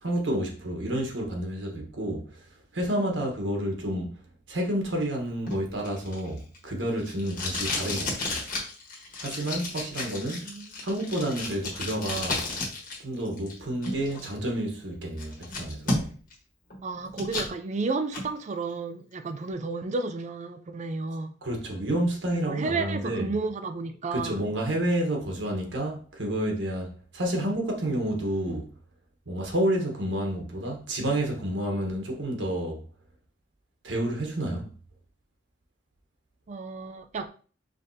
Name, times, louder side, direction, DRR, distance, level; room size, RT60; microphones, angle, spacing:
voice 1, 0.0-4.2 4.5-8.4 9.2-10.5 10.8-12.4 13.0-16.1 21.4-23.3 24.1-28.7 29.3-32.8 33.8-34.7, right 1 dB, 85° right, 1.2 m, -30 dB
Packing tape duct tape, 5.5-13.0 13.3-14.3 14.7-14.8 15.2-16.3 16.7-17.5 17.9-18.3, left 2 dB, 50° left, 1.3 m, -33 dB
voice 2, 10.3-10.7 16.8-21.3 22.5-24.4 36.5-37.3, right 3 dB, 40° right, 0.4 m, -32 dB
5.1 x 3.3 x 2.7 m
head